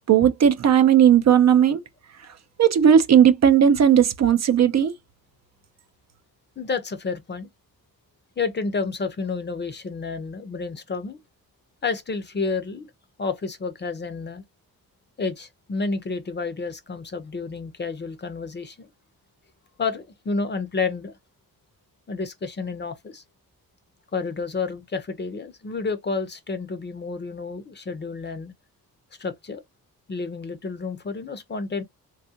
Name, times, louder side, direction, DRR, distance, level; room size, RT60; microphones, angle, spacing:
voice 1, 0.1-1.8 2.6-4.9, right 9 dB, 50° right, 0.5 m, -16 dB
voice 2, 6.6-7.5 8.4-11.2 11.8-12.9 13.2-14.4 15.2-18.9 19.8-21.1 22.1-23.2 24.1-28.5 29.2-29.6 30.1-31.8, left 4 dB, 30° left, 0.6 m, -30 dB
3.4 x 2.3 x 2.7 m
cardioid pair, 115°, 36 cm